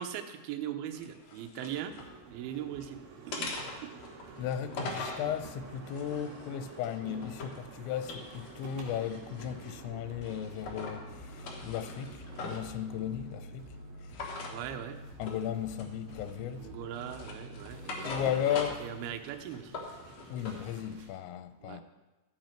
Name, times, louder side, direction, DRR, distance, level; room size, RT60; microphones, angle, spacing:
voice 1, 0.0-1.9 2.3-3.0 3.3-3.5 3.8-3.9 14.5-15.0 16.6-19.7 21.6-21.8, right 10 dB, 80° right, 2.3 m, -40 dB
sound 1, 0.9-2.1 2.5-2.9 3.3-5.3 5.8-7.6 8.0-9.8 10.2-11.0 11.3-12.7 14.1-14.6 15.2-15.5 15.8-16.5 16.9-18.9 19.3-20.6, left 3 dB, 65° left, 1.7 m, -42 dB
sound 2, 1.6-21.1, right 4 dB, 60° right, 2.7 m, -51 dB
voice 2, 4.4-13.7 14.0-14.4 15.2-16.7 18.1-18.9 20.3-21.8, left 9 dB, 90° left, 2.9 m, -36 dB
sound 3, 9.8-19.1, left 1 dB, 35° right, 2.1 m, -48 dB
12.5 x 7.7 x 4.5 m
omnidirectional pair, 5.2 m